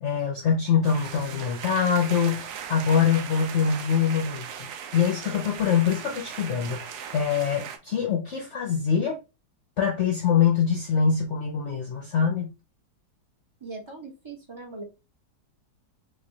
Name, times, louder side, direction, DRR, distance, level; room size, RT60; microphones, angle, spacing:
voice 1, 0.0-4.5 4.9-9.2 9.8-12.5, left 7 dB, 60° left, 0.7 m, -24 dB
sound 1, 0.8-7.8, right 8 dB, 75° right, 1.1 m, -38 dB
voice 2, 13.6-14.8, right 3 dB, 30° right, 0.5 m, -40 dB
3.4 x 3.1 x 2.7 m
omnidirectional pair, 1.8 m